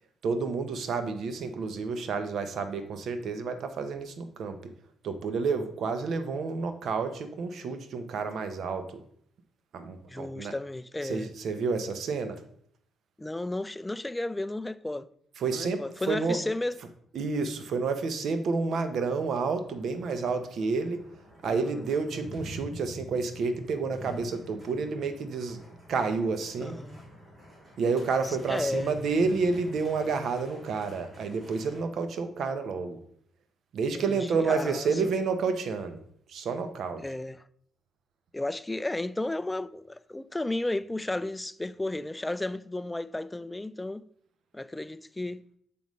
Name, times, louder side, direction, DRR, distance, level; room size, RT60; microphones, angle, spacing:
voice 1, 0.2-4.7 5.0-9.0 9.7-10.5 11.0-12.4 15.4-16.4 17.1-21.0 21.4-25.6 25.9-26.8 27.8-33.0 33.7-36.0 36.3-37.0, right 4 dB, 65° right, 0.8 m, -30 dB
voice 2, 10.1-11.3 13.2-15.1 15.5-16.8 21.4-21.9 26.6-27.1 28.2-28.9 33.9-35.1 37.0-37.4 38.3-44.0 44.5-45.4, left 2 dB, 10° left, 0.3 m, -33 dB
sound 1, 19.6-31.8, left 1 dB, 30° right, 2.3 m, -47 dB
6.8 x 5.2 x 3.1 m
cardioid pair, 90°, 0 cm